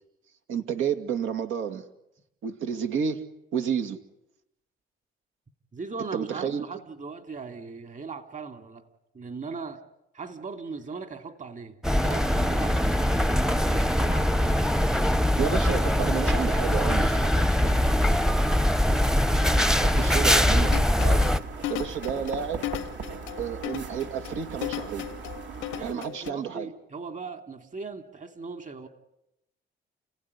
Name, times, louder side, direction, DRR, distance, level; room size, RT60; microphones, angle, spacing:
voice 1, 0.5-1.8 2.4-3.2 3.5-4.0 6.1-6.6 15.4-17.0 19.7-21.3 21.7-22.7 23.4-25.1 25.8-26.7, right 7 dB, 85° right, 2.4 m, -30 dB
voice 2, 5.7-8.9 9.1-9.8 10.1-14.6 16.0-18.2 25.7-28.9, right 4 dB, 40° right, 2.8 m, -39 dB
sound 1, 11.8-21.4, equal, 5° right, 0.8 m, -22 dB
sound 2, 18.8-25.9, right 4 dB, 65° right, 3.2 m, -39 dB
sound 3, 20.7-26.3, left 16 dB, 90° left, 0.8 m, -35 dB
29.5 x 16.5 x 9.9 m
cardioid pair, 90°, 20 cm